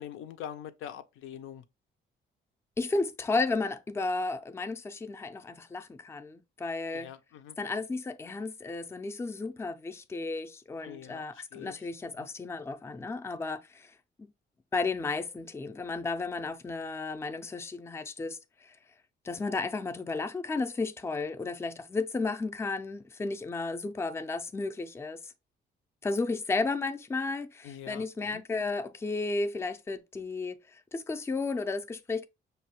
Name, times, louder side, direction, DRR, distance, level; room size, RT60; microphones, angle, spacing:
voice 1, 0.0-1.6 6.9-7.6 10.8-11.8 12.2-12.3 27.6-28.1 28.3-28.4, left 10 dB, 80° left, 0.4 m, -44 dB
voice 2, 2.8-7.1 7.6-14.3 14.7-18.8 19.2-25.3 26.0-32.3, left 3 dB, 15° left, 0.4 m, -33 dB
5.4 x 2.2 x 2.9 m
cardioid pair, 90°, 20 cm